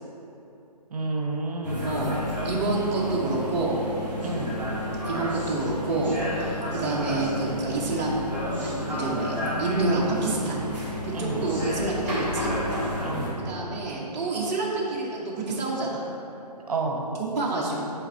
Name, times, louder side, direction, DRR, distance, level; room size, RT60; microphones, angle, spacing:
voice 1, 0.9-1.9 4.2-4.6 11.1-11.4 13.0-13.3 16.7-17.0, right 3 dB, 60° right, 1 dB, 0.8 m, -30 dB
sound 1, 1.6-13.3, left 1 dB, 5° right, 1.3 m, -31 dB
voice 2, 1.8-3.8 5.0-8.3 8.6-10.6 11.2-12.5 13.4-16.0 17.2-17.9, right 2 dB, 20° right, -5 dB, 0.6 m, -28 dB
7.0 x 3.4 x 4.2 m, 2.9 s
hypercardioid pair, 150°, 21 cm